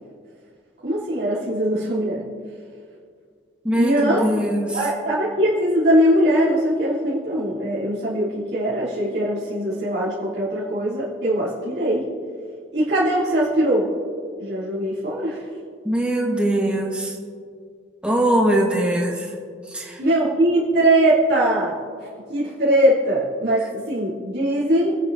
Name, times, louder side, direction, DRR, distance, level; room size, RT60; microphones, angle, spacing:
voice 1, 0.8-2.2 3.7-4.3 4.7-12.0 12.7-13.9 14.4-15.5 20.0-21.8 22.3-25.0, right 1 dB, 55° right, -10 dB, 3.2 m, -21 dB
voice 2, 3.6-4.8 15.8-17.1 18.0-19.3 19.7-20.0, right 1 dB, 5° right, -1 dB, 1.3 m, -21 dB
26.0 x 10.0 x 2.7 m, 2.1 s
head